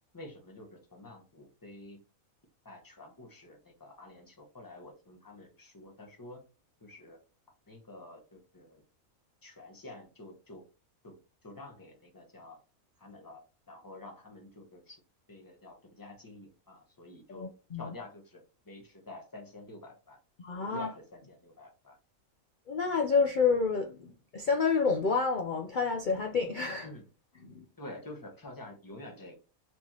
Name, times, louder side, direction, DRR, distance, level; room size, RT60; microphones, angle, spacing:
voice 1, 0.1-2.0 2.6-6.4 6.8-7.2 7.7-8.8 9.4-10.6 11.0-11.2 11.4-12.6 13.0-15.0 15.3-20.2 20.6-22.0 26.8-27.0 27.8-29.4, left 2 dB, 15° left, 0.9 m, -49 dB
voice 2, 17.3-17.8 20.4-20.9 22.7-26.9 27.5-27.6, left 5 dB, 65° left, 0.4 m, -29 dB
4.5 x 3.1 x 2.8 m
omnidirectional pair, 1.5 m